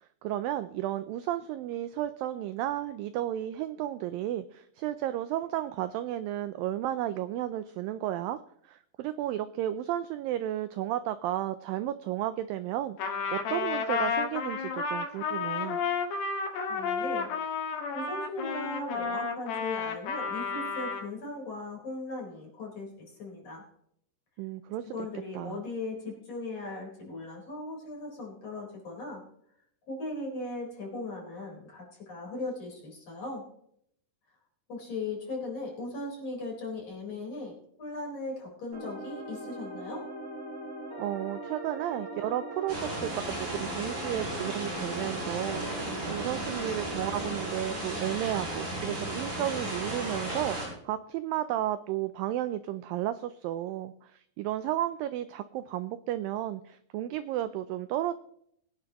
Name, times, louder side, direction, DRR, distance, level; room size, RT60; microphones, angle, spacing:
voice 1, 0.2-8.4 8.7-15.8 24.4-24.9 25.4-25.6 41.0-58.1, right 13 dB, 90° right, 12 dB, 2.0 m, -33 dB
Trumpet, 13.0-21.1, left 5 dB, 85° left, 3.6 m, -32 dB
voice 2, 16.7-17.3 17.9-23.6 24.9-29.2 29.9-33.4 34.7-40.1, left 2 dB, 40° left, -3 dB, 5.1 m, -38 dB
sound 1, 38.7-47.4, right 1 dB, 20° right, 2.8 m, -40 dB
sound 2, 42.7-50.7, right 1 dB, 45° right, 7.6 m, -35 dB
22.5 x 9.7 x 3.0 m, 0.69 s
omnidirectional pair, 4.6 m